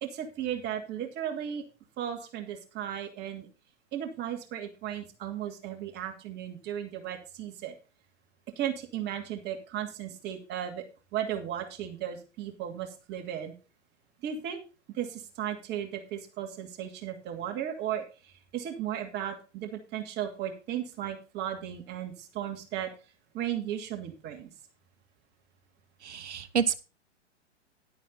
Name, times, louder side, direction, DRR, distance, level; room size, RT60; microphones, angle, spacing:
voice 1, 0.0-1.6 2.0-3.5 3.9-7.7 8.6-10.8 11.1-13.5 14.2-14.6 14.9-22.9 23.3-24.5, right 10 dB, 30° right, 3 dB, 2.6 m, -35 dB
voice 2, 26.0-26.8, right 7 dB, 70° right, 12 dB, 1.3 m, -28 dB
11.5 x 9.1 x 4.1 m, 0.32 s
figure-of-eight pair, 110°, 36 cm